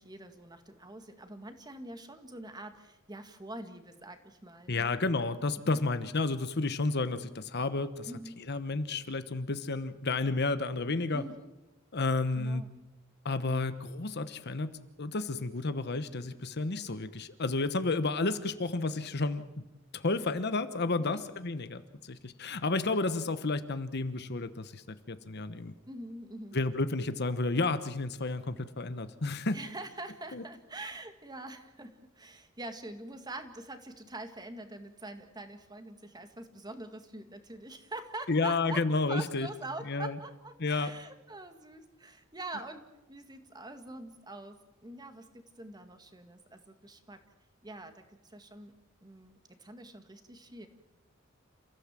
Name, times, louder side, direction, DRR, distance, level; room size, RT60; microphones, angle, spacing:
voice 1, 0.0-4.9 5.6-5.8 8.1-8.4 11.1-11.5 12.4-12.7 13.5-13.6 21.0-21.2 25.9-26.6 29.5-44.6 44.8-47.2 47.6-48.7 49.0-50.7, right 2 dB, 20° right, 7 dB, 2.0 m, -44 dB
voice 2, 4.7-8.1 8.5-11.2 11.9-12.6 13.2-14.7 15.0-19.4 19.9-25.7 26.5-29.6 30.3-30.4 38.3-39.5 39.8-40.2 40.6-40.9, left 3 dB, 55° left, 12 dB, 1.1 m, -31 dB
29.5 x 15.5 x 7.6 m, 0.98 s
head